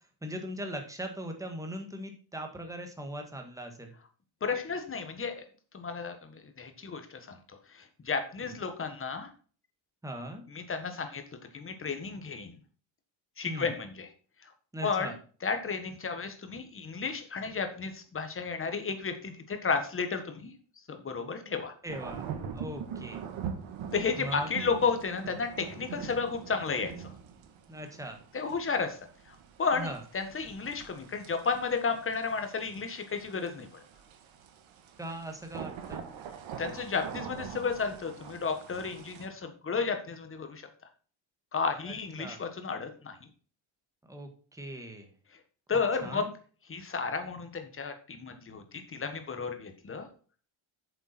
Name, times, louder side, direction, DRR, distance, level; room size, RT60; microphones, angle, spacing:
voice 1, 0.2-3.9 10.0-10.4 13.4-13.7 14.7-15.1 21.8-23.2 24.2-24.5 27.7-28.2 29.7-30.0 35.0-36.0 41.9-42.4 44.1-45.1 46.0-46.3, right 1 dB, 5° right, 4 dB, 1.7 m, -40 dB
voice 2, 4.4-5.4 5.7-6.2 6.6-7.4 7.7-9.3 10.5-11.2 11.5-12.6 13.4-14.1 14.8-15.1 15.4-20.5 20.9-21.7 23.9-27.1 28.3-29.0 29.6-33.7 36.6-40.6 41.5-43.1 45.7-46.3 46.7-50.1, left 5 dB, 25° left, 7 dB, 1.5 m, -32 dB
sound 1, 21.9-39.3, right 7 dB, 75° right, 1.7 m, -43 dB
8.4 x 7.0 x 4.3 m, 0.41 s
cardioid pair, 140°, 48 cm